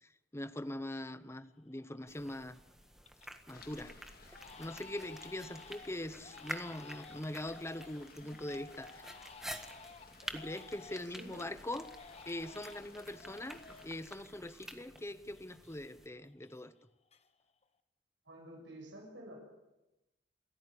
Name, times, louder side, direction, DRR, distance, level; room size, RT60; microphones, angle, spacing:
voice 1, 0.0-2.6 3.5-3.9 4.3-9.1 10.3-11.9 12.3-16.7, left 1 dB, 15° left, 12 dB, 0.9 m, -42 dB
Crying sobbing, 1.7-2.2 2.6-3.4 3.7-3.9 4.3-11.2 11.7-15.0 15.3-16.8 17.1-17.6, left 4 dB, 35° left, 1.3 m, -55 dB
sound 1, 2.1-16.1, equal, 5° right, 1.6 m, -50 dB
sound 2, 3.5-14.0, left 4 dB, 55° left, 2.4 m, -60 dB
voice 2, 11.0-11.5 18.2-19.4, right 1 dB, 80° right, 0 dB, 7.6 m, -50 dB
27.5 x 14.5 x 8.5 m, 0.97 s
head